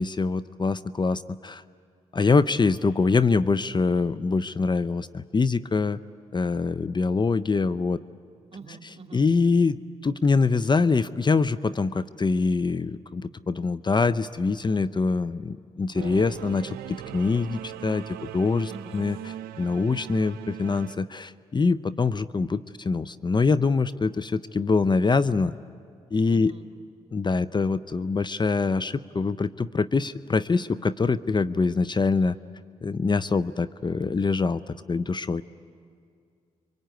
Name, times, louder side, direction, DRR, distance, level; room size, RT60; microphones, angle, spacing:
voice 1, 0.0-1.6 2.1-6.0 6.3-8.0 9.1-19.2 19.6-25.6 26.1-26.5 27.1-32.3 32.8-35.4, left 4 dB, 30° left, 12 dB, 0.7 m, -24 dB
voice 2, 8.5-9.3 18.7-19.0 26.3-26.6, right 4 dB, 45° right, 5 dB, 2.5 m, -45 dB
Singing / Musical instrument, 15.9-21.0, right 11 dB, 80° right, 0.6 m, -39 dB
26.5 x 24.0 x 9.3 m, 2.3 s
hypercardioid pair, 45°, 15 cm